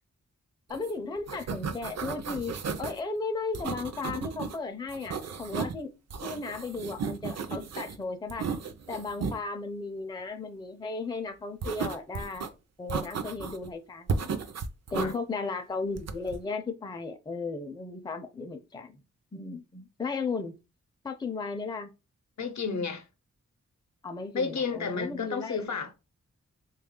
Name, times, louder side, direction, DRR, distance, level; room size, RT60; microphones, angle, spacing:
voice 1, 0.7-5.9 6.2-8.5 8.9-14.4 14.9-19.0 19.3-20.6 21.0-21.9 24.0-25.8, left 4 dB, 15° left, 0.4 m, -35 dB
sound 1, 0.7-3.0 3.5-4.6 4.9-5.8 6.1-8.0 8.3-9.4 11.6-12.5 12.9-13.7 14.1-15.1 15.9-16.4, right 5 dB, 60° right, 0.5 m, -34 dB
voice 2, 22.4-23.0 24.3-25.9, left 5 dB, 70° left, 0.6 m, -31 dB
3.4 x 2.3 x 3.6 m
wide cardioid pair, 135°, 29 cm